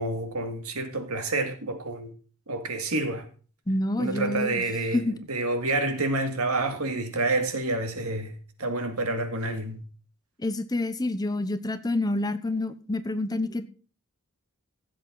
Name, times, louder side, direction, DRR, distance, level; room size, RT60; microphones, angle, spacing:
voice 1, 0.0-2.1 2.5-3.3 4.0-9.8, right 2 dB, 75° right, 2.3 m, -28 dB
voice 2, 3.7-4.6 4.9-5.2 10.4-13.7, left 2 dB, 15° left, 0.8 m, -28 dB
15.5 x 7.9 x 3.9 m
head